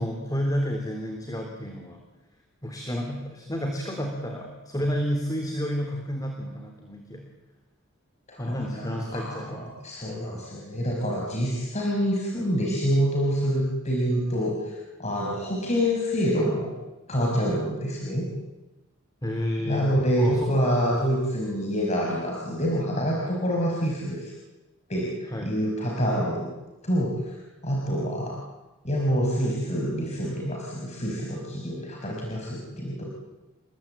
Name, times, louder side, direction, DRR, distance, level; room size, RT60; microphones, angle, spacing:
voice 1, 0.0-2.0 2.6-7.3 8.4-9.6 19.2-19.9 20.2-20.5 25.3-25.6, equal, 20° left, 3 dB, 3.4 m, -30 dB
voice 2, 8.3-16.7 17.1-18.3 19.6-24.3 24.9-26.5 26.8-27.4 27.6-28.4 28.8-33.0, equal, 35° left, -2 dB, 5.4 m, -27 dB
30.0 x 21.5 x 8.8 m, 1.1 s
head